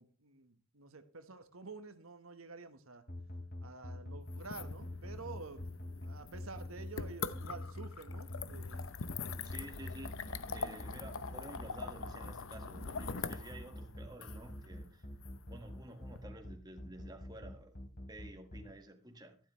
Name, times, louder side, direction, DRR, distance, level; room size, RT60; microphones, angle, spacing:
voice 1, 0.0-3.0 3.6-5.6 6.0-8.8 9.7-9.8, right 4 dB, 90° right, 1.4 m, -49 dB
sound 1, 3.1-18.6, left 1 dB, 45° left, 2.8 m, -45 dB
sound 2, 4.3-16.2, left 5 dB, 75° left, 0.8 m, -44 dB
voice 2, 9.3-15.1 15.5-19.4, right 1 dB, 20° right, 1.7 m, -52 dB
12.5 x 11.5 x 3.2 m
head